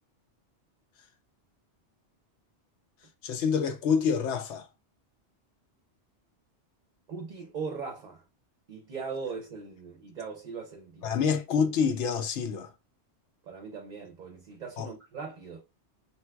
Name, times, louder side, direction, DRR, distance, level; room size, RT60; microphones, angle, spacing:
voice 1, 3.2-4.7 11.0-12.7 14.8-14.9, left 6 dB, 85° left, 0.9 m, -27 dB
voice 2, 7.1-8.2 8.7-11.2 13.5-15.6, right 5 dB, 50° right, 0.6 m, -39 dB
3.5 x 2.8 x 2.2 m
omnidirectional pair, 1.2 m